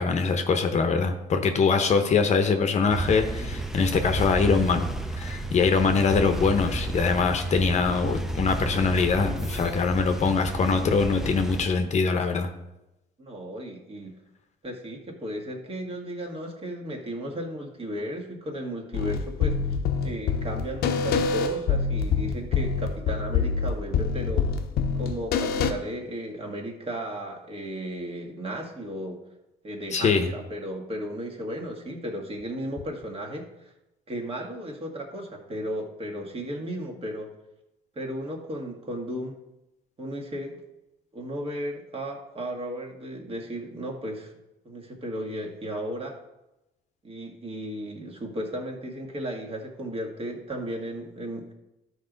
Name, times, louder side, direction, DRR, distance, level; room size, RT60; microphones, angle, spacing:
voice 1, 0.0-4.9 5.2-12.5 29.9-30.3, left 5 dB, 40° left, 6 dB, 0.9 m, -23 dB
sound 1, 2.9-11.7, right 2 dB, ahead, 0.7 m, -32 dB
voice 2, 13.2-14.1 14.6-19.8 20.0-24.5 25.0-29.2 29.6-33.7 34.1-37.3 38.0-39.4 40.0-40.6 41.1-44.3 44.7-46.2 47.0-51.5, equal, 35° right, 0 dB, 1.9 m, -35 dB
sound 2, 18.9-25.7, left 5 dB, 65° left, 0.8 m, -26 dB
12.5 x 4.9 x 3.9 m, 0.94 s
cardioid pair, 110°, 17 cm